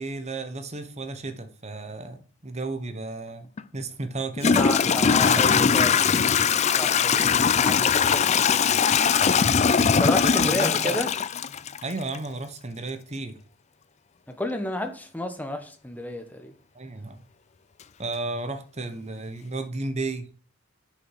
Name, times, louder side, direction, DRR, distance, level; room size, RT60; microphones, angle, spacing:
voice 1, 0.0-4.6 5.2-5.8 7.8-8.0 10.2-11.0 11.8-13.4 16.7-17.2 18.0-20.3, right 2 dB, 30° right, 1.1 m, -33 dB
Toilet flush / Trickle dribble, 3.6-3.7 4.4-12.2, left 6 dB, 30° left, 0.4 m, -21 dB
voice 2, 4.5-6.0 6.8-8.6 10.0-11.1 14.3-16.5, left 1 dB, 5° left, 1.2 m, -31 dB
9.9 x 6.2 x 4.8 m
head